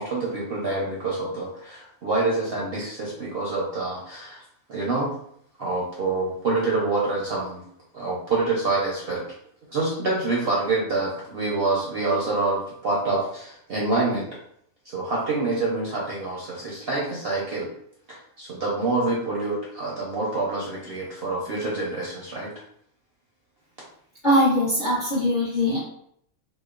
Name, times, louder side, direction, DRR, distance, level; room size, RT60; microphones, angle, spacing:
voice 1, 0.0-4.4 4.7-5.1 5.6-7.6 7.9-9.2 9.7-14.3 14.8-17.7 18.1-22.5, right 3 dB, 60° right, -5 dB, 0.6 m, -26 dB
voice 2, 24.2-25.8, equal, 50° left, -7 dB, 0.6 m, -21 dB
2.9 x 2.1 x 2.3 m, 0.68 s
omnidirectional pair, 1.5 m